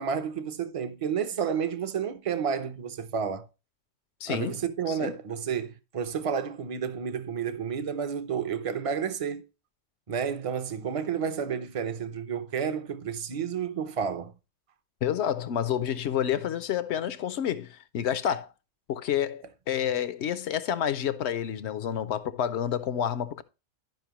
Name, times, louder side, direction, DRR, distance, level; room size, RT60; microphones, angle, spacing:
voice 1, 0.0-3.5 4.3-9.5 10.1-14.3, right 7 dB, 35° right, 0.6 m, -31 dB
voice 2, 4.2-4.6 4.9-5.1 15.0-18.5 18.9-23.4, left 9 dB, 70° left, 0.8 m, -29 dB
12.0 x 5.3 x 2.9 m
omnidirectional pair, 1.3 m